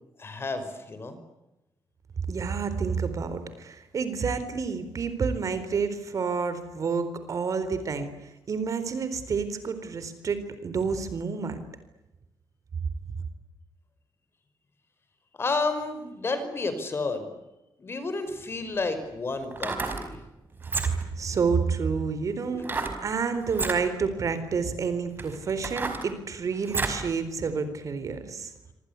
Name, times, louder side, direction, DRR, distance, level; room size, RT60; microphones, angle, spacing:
voice 1, 0.2-1.2 15.4-17.3 17.8-20.2 22.5-22.6, left 3 dB, 30° left, 10 dB, 5.4 m, -31 dB
voice 2, 2.3-11.6 20.8-28.5, right 5 dB, 45° right, 11 dB, 4.1 m, -29 dB
sound 1, 18.3-18.4 19.4-20.1 20.6-21.2 22.6-23.0 23.5-23.8 24.5-24.6 25.2-27.1 27.5-27.6, right 3 dB, 25° right, 5.1 m, -31 dB
27.0 x 26.5 x 8.4 m, 0.97 s
wide cardioid pair, 155°, 8 cm